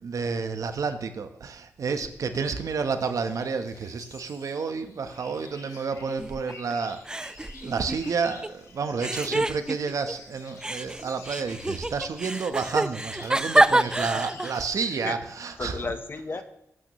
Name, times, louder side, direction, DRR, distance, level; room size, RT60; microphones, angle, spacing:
voice 1, 0.0-15.8, right 5 dB, 75° right, 8 dB, 1.1 m, -30 dB
sound 1, 3.0-15.0, left 3 dB, 75° left, 2.4 m, -49 dB
sound 2, 6.2-6.7 7.1-8.5 9.0-10.1 10.6-14.6, right 2 dB, 15° right, 0.4 m, -27 dB
sound 3, 7.9-10.4 11.0-11.4 13.1-13.5 14.5-14.9 15.3-15.4, right 3 dB, 55° right, 4.0 m, -53 dB
voice 2, 9.2-9.5 14.0-14.2 14.9-15.2 15.6-16.4, left 3 dB, 40° left, 9 dB, 1.2 m, -35 dB
19.0 x 8.9 x 3.2 m, 0.80 s
cardioid pair, 65°, 6 cm